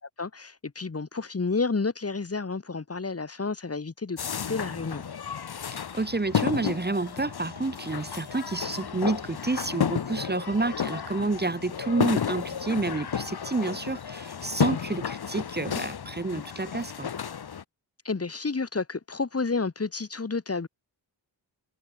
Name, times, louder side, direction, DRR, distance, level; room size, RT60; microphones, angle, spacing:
voice 1, 0.2-5.1 18.0-20.7, left 4 dB, 35° left, 3.3 m, -30 dB
sound 1, 4.2-17.6, left 7 dB, 60° left, 1.7 m, -32 dB
voice 2, 5.7-17.1, right 3 dB, 25° right, 2.3 m, -29 dB
wide cardioid pair, 170°, 42 cm